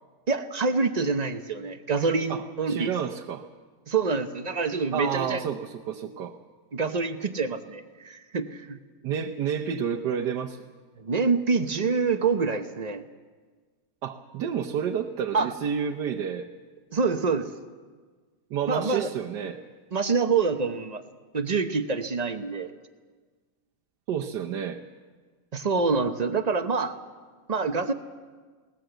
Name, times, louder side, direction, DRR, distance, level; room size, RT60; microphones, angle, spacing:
voice 1, 0.3-2.9 3.9-5.4 6.7-8.8 11.0-13.0 15.3-15.5 16.9-17.5 18.7-19.1 19.9-21.0 21.3-22.7 25.5-26.9 27.5-27.9, right 4 dB, 45° right, 9 dB, 0.5 m, -26 dB
voice 2, 2.3-3.4 4.9-6.4 9.0-10.6 14.0-16.4 18.5-19.6 24.1-24.8, right 8 dB, 70° right, 1 dB, 1.4 m, -30 dB
20.0 x 19.0 x 7.9 m, 1.5 s
omnidirectional pair, 2.0 m